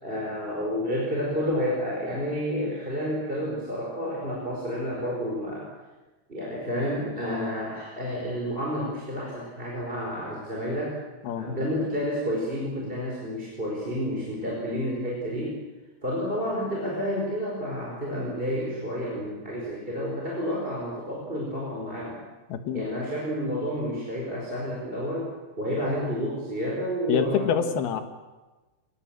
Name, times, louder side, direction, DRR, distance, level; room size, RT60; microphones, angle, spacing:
voice 1, 0.0-5.7 6.3-11.0 11.4-15.6 16.0-22.2 22.7-27.6, equal, 15° right, -4 dB, 4.8 m, -30 dB
voice 2, 22.5-22.9 27.1-28.0, left 7 dB, 70° left, 8 dB, 3.3 m, -26 dB
24.0 x 20.5 x 7.7 m, 1.1 s
omnidirectional pair, 4.7 m